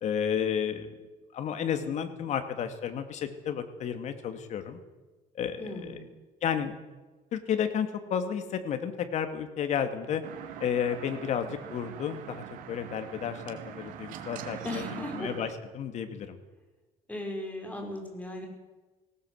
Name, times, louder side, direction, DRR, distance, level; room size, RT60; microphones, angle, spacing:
voice 1, 0.0-0.9 1.3-4.8 5.4-6.0 6.4-6.7 7.3-10.2 10.6-15.5 15.7-16.4, left 8 dB, 60° left, 8 dB, 2.5 m, -32 dB
voice 2, 5.6-6.2 14.6-15.3 17.1-18.5, left 1 dB, 10° left, 2 dB, 5.5 m, -37 dB
sound 1, 10.2-15.5, right 10 dB, 80° right, 2.7 m, -42 dB
19.0 x 18.5 x 8.2 m, 1.2 s
cardioid pair, 125°, 14 cm